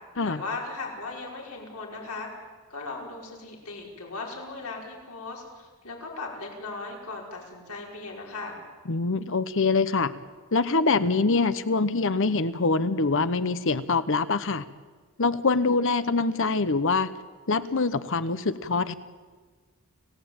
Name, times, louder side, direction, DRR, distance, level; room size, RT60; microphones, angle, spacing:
voice 1, 0.2-2.3 2.7-8.6, left 3 dB, 90° left, -1 dB, 5.5 m, -37 dB
voice 2, 8.9-10.1 10.5-14.6 15.2-17.1 17.5-18.9, left 3 dB, 60° left, 14 dB, 0.9 m, -24 dB
30.0 x 17.5 x 8.8 m, 1.5 s
head